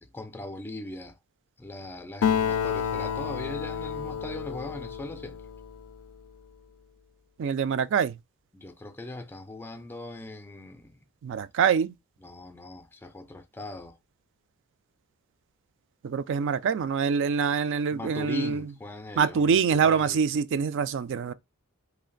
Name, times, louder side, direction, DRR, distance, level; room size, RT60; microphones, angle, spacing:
voice 1, 0.0-1.2 1.6-5.4 8.5-11.0 12.2-14.0 17.9-20.2, left 1 dB, 10° left, 0.4 m, -40 dB
Acoustic guitar, 2.2-6.0, left 7 dB, 80° left, 0.4 m, -30 dB
voice 2, 7.4-8.2 11.2-11.9 16.0-18.7 19.2-21.3, right 6 dB, 55° right, 0.3 m, -25 dB
3.3 x 2.5 x 3.8 m
head